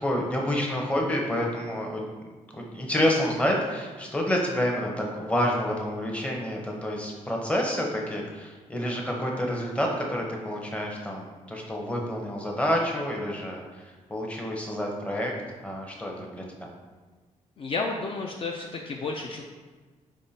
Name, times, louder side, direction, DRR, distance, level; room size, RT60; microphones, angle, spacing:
voice 1, 0.0-15.3 15.6-16.7, equal, 10° left, -1 dB, 0.7 m, -28 dB
voice 2, 17.6-19.4, left 3 dB, 45° left, 1 dB, 0.4 m, -31 dB
4.9 x 3.5 x 2.7 m, 1.3 s
cardioid pair, 115°, 13 cm